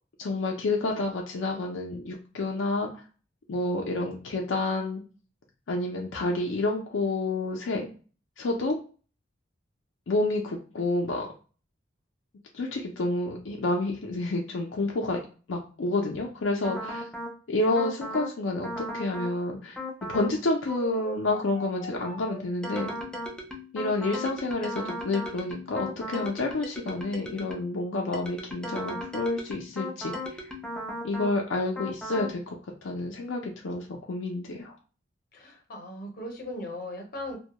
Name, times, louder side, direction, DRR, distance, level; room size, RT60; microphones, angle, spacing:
voice 1, 0.2-2.9 3.5-5.0 5.7-7.9 8.4-8.8 10.1-11.3 12.5-15.2 15.5-17.0 17.5-19.8 20.1-22.9 23.7-30.1 31.0-34.7, left 2 dB, 75° left, 0 dB, 0.5 m, -29 dB
sound 1, 16.6-17.4 17.8-18.3 18.6-19.4 19.8-20.3 20.7-27.7 28.1-31.4 31.8-32.3, left 1 dB, 5° left, 0.4 m, -37 dB
voice 2, 35.3-37.4, left 1 dB, 50° left, 1 dB, 0.7 m, -38 dB
2.2 x 2.1 x 2.8 m, 0.37 s
head